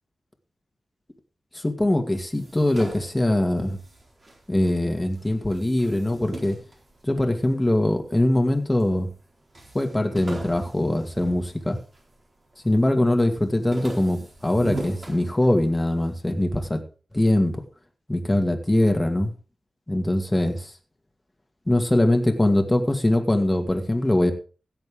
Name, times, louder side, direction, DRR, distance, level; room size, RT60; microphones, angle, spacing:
voice 1, 1.5-3.8 4.5-6.6 7.0-9.1 9.7-11.8 12.6-16.8 17.1-17.6 18.1-19.3 19.9-20.7 21.7-24.3, left 1 dB, 15° left, 5 dB, 2.1 m, -22 dB
sound 1, 2.1-4.8 5.1-7.6 8.2-8.9 9.2-9.3 9.5-12.1 12.5-13.0 13.3-15.9, right 2 dB, 40° right, 4.2 m, -39 dB
16.5 x 8.0 x 3.7 m, 0.37 s
cardioid pair, 65°, 0 cm